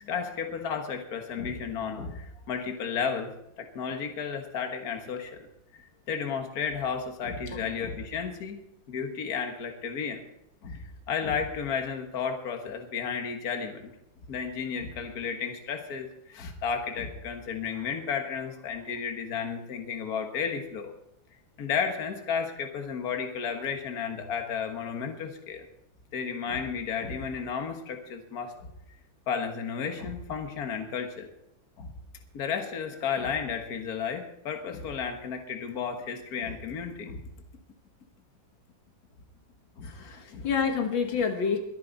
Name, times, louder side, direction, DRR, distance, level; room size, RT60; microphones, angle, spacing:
voice 1, 0.1-3.3 3.6-5.5 6.1-10.2 10.6-13.9 14.3-20.9 21.6-25.7 26.1-28.7 29.3-31.3 31.8-31.9 32.3-37.2 39.8-39.9 40.3-40.5, left 6 dB, 50° left, 5 dB, 1.9 m, -33 dB
voice 2, 39.8-41.6, left 6 dB, 75° left, 5 dB, 2.1 m, -29 dB
22.5 x 9.6 x 4.1 m, 0.79 s
omnidirectional pair, 2.1 m